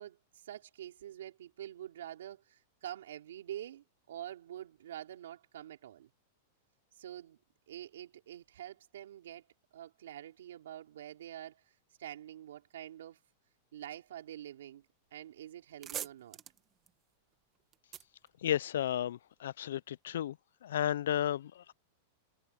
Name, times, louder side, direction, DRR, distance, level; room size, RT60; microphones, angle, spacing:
voice 1, 0.0-6.1 7.0-7.4 7.7-9.5 9.7-13.2 13.7-14.8 15.1-16.4, right 11 dB, 90° right, 4.1 m, -46 dB
sound 1, 15.1-15.2 15.5-19.1, right 10 dB, 20° right, 1.3 m, -46 dB
voice 2, 18.4-20.3 20.6-21.7, left 11 dB, 80° left, 0.3 m, -33 dB
supercardioid pair, 180°, 0 cm